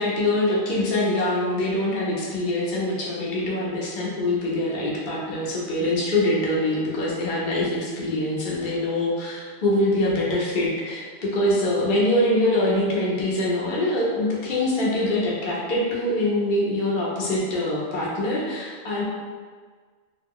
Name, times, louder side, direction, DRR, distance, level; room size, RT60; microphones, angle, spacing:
voice 1, 0.0-19.0, left 1 dB, 55° left, -5 dB, 0.8 m, -24 dB
2.3 x 2.1 x 3.5 m, 1.5 s
omnidirectional pair, 1.1 m